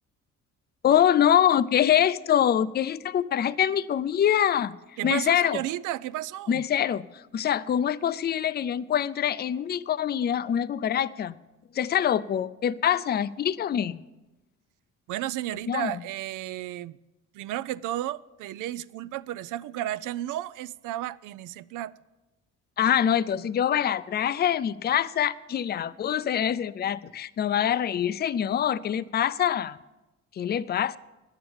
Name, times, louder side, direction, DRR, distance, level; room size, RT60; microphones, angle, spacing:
voice 1, 0.8-4.8 5.0-5.6 6.5-11.4 11.7-14.0 15.7-16.0 22.8-29.8 30.3-31.0, left 9 dB, 35° left, 0.4 m, -24 dB
voice 2, 5.0-6.6 15.1-17.0 17.3-21.9, right 14 dB, 90° right, 0.5 m, -33 dB
11.0 x 8.8 x 7.1 m
cardioid pair, 90°, 30 cm